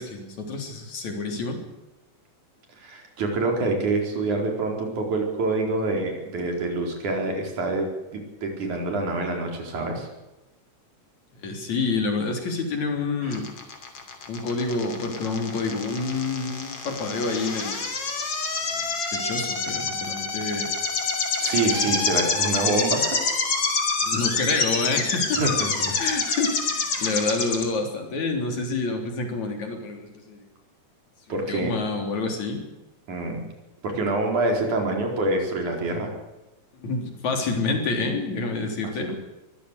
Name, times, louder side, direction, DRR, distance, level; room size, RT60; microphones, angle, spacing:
voice 1, 0.0-1.6 11.4-13.5 14.3-17.9 18.7-20.7 24.0-25.4 26.0-30.4 31.5-32.6 36.8-39.1, left 3 dB, 65° left, 4 dB, 4.9 m, -28 dB
voice 2, 2.8-10.1 13.2-13.4 21.4-23.2 25.3-26.0 31.3-31.7 33.1-33.5 33.8-36.1 39.0-39.2, right 2 dB, 70° right, 2 dB, 5.8 m, -26 dB
sound 1, 13.3-27.6, left 4 dB, 50° left, 3.9 m, -27 dB
23.0 x 15.5 x 8.3 m, 1.0 s
omnidirectional pair, 3.5 m